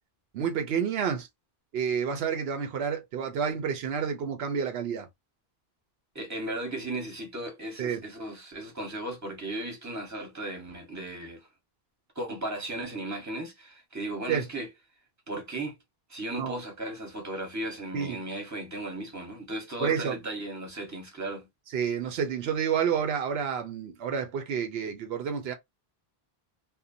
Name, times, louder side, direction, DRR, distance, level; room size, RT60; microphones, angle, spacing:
voice 1, 0.3-1.3 1.7-5.1 7.8-8.0 14.3-14.5 16.4-16.6 17.9-18.2 19.8-20.2 21.7-25.5, right 7 dB, 85° right, 0.9 m, -29 dB
voice 2, 6.1-11.5 12.1-14.7 15.3-15.8 16.1-21.5, right 1 dB, 15° right, 1.0 m, -36 dB
2.7 x 2.1 x 2.5 m
omnidirectional pair, 1.0 m